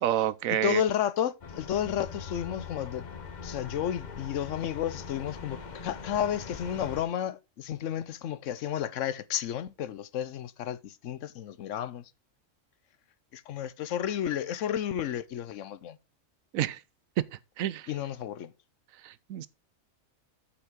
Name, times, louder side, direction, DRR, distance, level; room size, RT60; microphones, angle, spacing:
voice 1, 0.0-0.8 16.5-16.8 17.6-17.9 19.0-19.5, right 11 dB, 90° right, 1.1 m, -28 dB
voice 2, 0.6-3.1 3.4-12.1 13.3-16.0 17.9-18.5, left 10 dB, 70° left, 1.0 m, -32 dB
sound 1, 1.4-7.0, left 5 dB, 40° left, 0.9 m, -42 dB
8.4 x 8.2 x 3.6 m
omnidirectional pair, 1.4 m